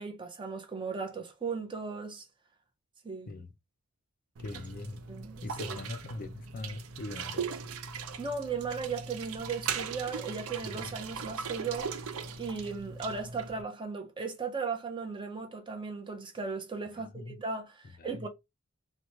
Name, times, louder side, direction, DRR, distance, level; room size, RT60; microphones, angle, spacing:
voice 1, 0.0-2.2 3.0-3.3 5.1-5.8 8.2-11.9 12.4-18.3, right 5 dB, 20° right, 0.6 m, -37 dB
voice 2, 4.4-5.0 5.4-7.5 10.7-10.8 16.9-17.4 18.0-18.3, left 2 dB, 40° left, 0.4 m, -41 dB
sound 1, 4.4-13.6, right 5 dB, 70° right, 0.4 m, -39 dB
2.9 x 2.1 x 2.8 m
head